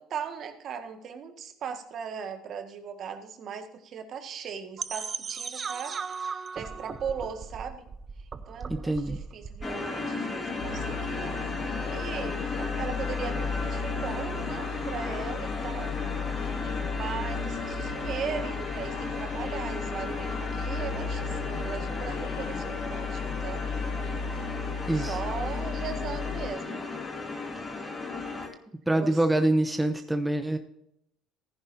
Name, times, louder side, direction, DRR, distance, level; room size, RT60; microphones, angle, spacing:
voice 1, 0.0-6.0 6.2-7.9 8.5-15.9 16.9-23.7 24.9-26.9 28.9-29.2, right 7 dB, 55° right, 7 dB, 1.7 m, -38 dB
sound 1, 4.8-9.7, right 5 dB, 35° right, 0.7 m, -37 dB
voice 2, 8.7-9.2 24.9-25.2 28.9-30.6, right 1 dB, 10° right, 7 dB, 0.9 m, -25 dB
sound 2, 9.6-28.5, left 3 dB, 25° left, 2.5 m, -35 dB
sound 3, 10.6-26.5, left 5 dB, 85° left, 1.7 m, -35 dB
15.0 x 10.0 x 2.7 m, 0.77 s
supercardioid pair, 85°, 0 cm